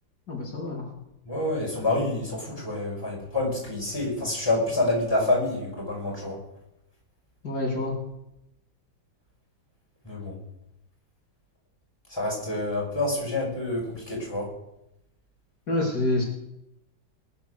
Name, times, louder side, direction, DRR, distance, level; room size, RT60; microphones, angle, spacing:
voice 1, 0.3-0.9 7.4-7.9 15.7-16.2, left 2 dB, 55° left, -2 dB, 3.5 m, -27 dB
voice 2, 1.3-6.4 10.0-10.3 12.1-14.5, left 2 dB, 10° left, -3 dB, 5.3 m, -27 dB
21.0 x 9.4 x 6.5 m, 0.85 s
omnidirectional pair, 2.0 m